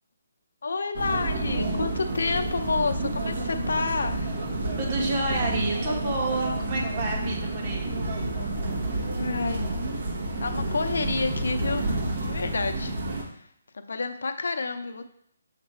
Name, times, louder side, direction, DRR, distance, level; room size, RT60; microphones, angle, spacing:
voice 1, 0.6-4.4 9.1-9.7 10.4-11.8 12.2-12.9 13.7-15.0, left 4 dB, 75° left, 6 dB, 0.6 m, -29 dB
sound 1, 0.9-13.2, right 2 dB, 65° right, 1.5 m, -29 dB
voice 2, 4.7-7.9, right 2 dB, 35° right, -1 dB, 1.6 m, -29 dB
6.7 x 3.3 x 4.3 m, 0.69 s
hypercardioid pair, 155°, 0 cm